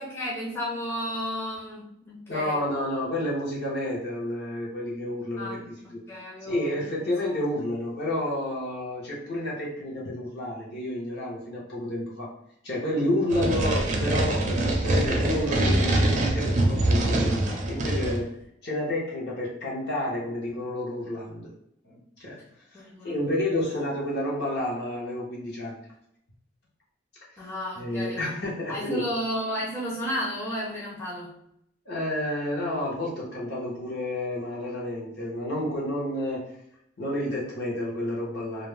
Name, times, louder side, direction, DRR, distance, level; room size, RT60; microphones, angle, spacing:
voice 1, 0.0-2.6 5.4-7.4 22.7-23.3 27.4-28.4 28.7-31.4, equal, 10° left, -6 dB, 0.5 m, -33 dB
voice 2, 2.3-6.0 6.4-12.3 12.6-18.3 18.6-21.5 21.8-22.4 22.7-25.8 27.7-29.0 31.9-36.6 37.0-38.7, left 1 dB, 55° left, -5 dB, 0.9 m, -30 dB
sound 1, 13.3-18.3, right 1 dB, 40° right, 0.4 m, -24 dB
2.4 x 2.0 x 3.1 m, 0.74 s
head